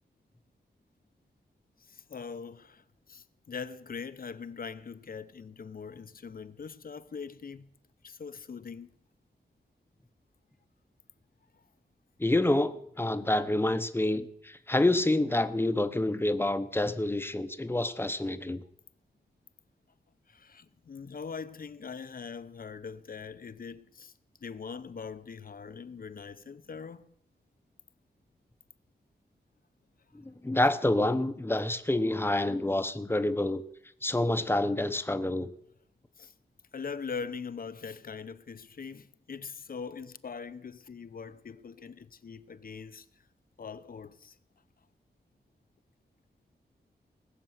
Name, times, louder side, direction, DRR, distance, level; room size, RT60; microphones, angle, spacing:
voice 1, 1.8-7.7 8.0-8.9 11.5-11.6 20.3-24.1 24.4-27.1 36.2-36.3 36.7-43.1 43.6-44.4, left 5 dB, 55° left, 0.8 m, -42 dB
voice 2, 12.2-18.6 30.1-33.6 34.0-35.5, left 1 dB, 15° left, 0.9 m, -28 dB
19.5 x 6.9 x 9.4 m
wide cardioid pair, 135°, 18 cm